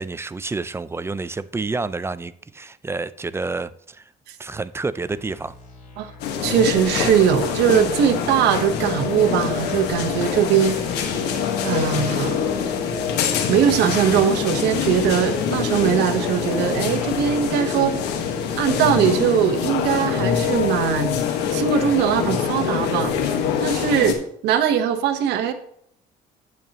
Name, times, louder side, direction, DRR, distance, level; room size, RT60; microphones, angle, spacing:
voice 1, 0.0-4.1 4.4-5.5, right 3 dB, 15° right, 15 dB, 0.4 m, -29 dB
sound 1, 5.0-16.3, left 3 dB, 45° left, 3.5 m, -45 dB
sound 2, 6.2-24.1, left 7 dB, 90° left, 1.5 m, -24 dB
voice 2, 6.4-10.8 11.6-12.4 13.5-18.0 18.6-21.1 21.5-23.1 23.6-24.2 24.4-25.5, right 8 dB, 85° right, 7 dB, 1.1 m, -20 dB
Harp, 6.5-23.0, left 3 dB, 30° left, 1.7 m, -44 dB
9.3 x 8.6 x 3.0 m, 0.67 s
cardioid pair, 110°, 17 cm